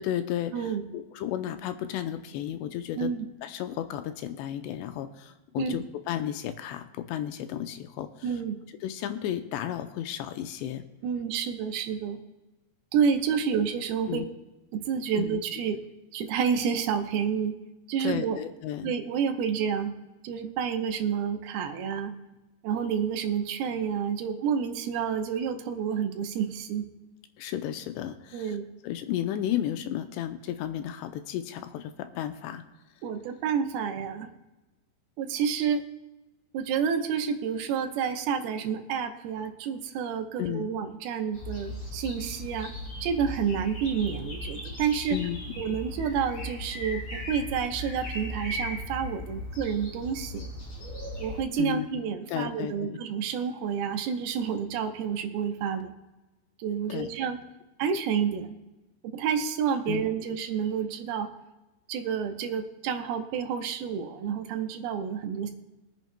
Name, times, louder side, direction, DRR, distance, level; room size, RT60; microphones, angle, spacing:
voice 1, 0.0-3.1 3.4-8.3 8.8-10.8 14.1-14.3 15.2-15.4 18.0-18.9 27.4-28.6 28.8-32.6 40.4-40.7 45.1-45.4 45.7-45.8 51.6-52.0 52.3-53.0 56.9-57.1 59.9-60.0, left 11 dB, 80° left, 9 dB, 2.8 m, -33 dB
voice 2, 0.5-0.8 3.0-3.3 5.6-5.8 8.2-8.6 11.0-12.2 12.9-14.2 14.7-15.8 16.1-17.5 17.9-18.4 18.8-19.9 20.2-22.1 22.6-26.9 28.3-28.7 33.0-34.3 35.2-35.8 36.5-42.7 43.0-45.2 45.6-50.5 51.2-55.9 56.6-57.4 57.8-58.6 59.0-61.3 61.9-65.5, right 7 dB, 75° right, 5 dB, 2.5 m, -29 dB
sound 1, 41.3-51.4, equal, 35° left, 3.0 m, -37 dB
24.0 x 9.1 x 2.2 m, 1.1 s
omnidirectional pair, 5.1 m